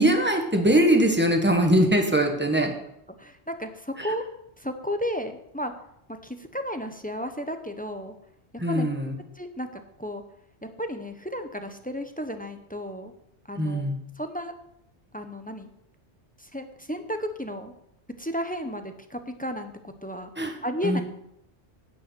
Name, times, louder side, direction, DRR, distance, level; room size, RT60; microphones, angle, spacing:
voice 1, 0.0-2.7 4.0-4.1 8.6-9.1 13.6-14.0 20.4-20.6 20.8-21.0, right 1 dB, 10° right, 3 dB, 1.5 m, -22 dB
voice 2, 3.2-4.3 4.6-5.7 6.1-8.1 8.5-8.9 9.4-10.2 10.6-13.1 13.5-13.9 14.2-14.5 15.1-15.7 16.4-17.7 18.2-19.7 20.0-20.3 20.6-21.0, equal, 10° left, 7 dB, 0.8 m, -33 dB
10.5 x 5.5 x 8.3 m, 0.76 s
omnidirectional pair, 1.2 m